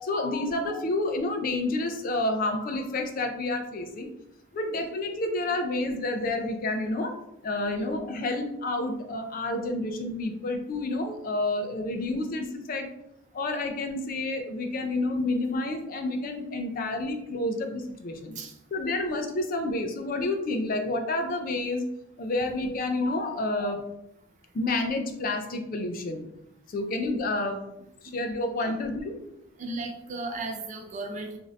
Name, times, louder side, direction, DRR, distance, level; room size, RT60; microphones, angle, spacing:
voice 1, 0.0-4.1 4.5-7.2 7.4-12.9 13.3-18.4 18.7-21.9 22.2-23.8 24.5-26.3 26.7-27.6 28.0-29.1, left 2 dB, 40° left, 5 dB, 0.3 m, -29 dB
voice 2, 29.6-31.4, right 2 dB, 35° right, 4 dB, 0.3 m, -35 dB
2.6 x 2.5 x 3.1 m, 0.84 s
head